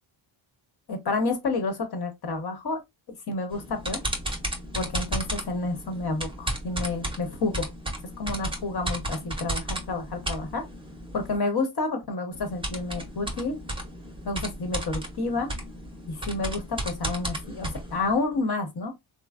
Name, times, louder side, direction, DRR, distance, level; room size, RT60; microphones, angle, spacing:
voice 1, 0.9-2.8 3.3-4.0 4.7-7.7 8.2-10.6 11.1-13.6 14.2-15.5 16.1-18.9, left 3 dB, 50° left, 1.1 m, -29 dB
sound 1, 3.5-11.4 12.3-18.2, right 1 dB, 10° right, 0.8 m, -34 dB
3.1 x 2.1 x 2.4 m
cardioid pair, 95°, 49 cm